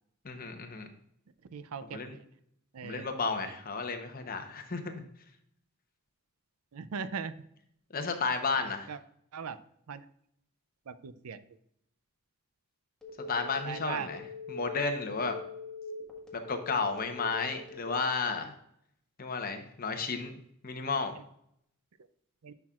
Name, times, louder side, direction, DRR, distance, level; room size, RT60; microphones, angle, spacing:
voice 1, 0.2-0.9 1.8-2.2 2.8-5.1 7.9-8.9 13.3-15.4 16.5-18.5 19.2-20.3 20.6-21.2, left 4 dB, 40° left, 6 dB, 0.9 m, -33 dB
voice 2, 1.5-2.0 2.7-3.0 6.7-7.3 8.9-9.0 9.3-9.6 9.9-10.0 10.9-11.4 13.6-14.1 22.4-22.5, right 6 dB, 90° right, 13 dB, 0.5 m, -38 dB
Telephone, 13.0-18.2, left 4 dB, 5° left, 1.4 m, -42 dB
10.5 x 5.9 x 2.4 m, 0.71 s
head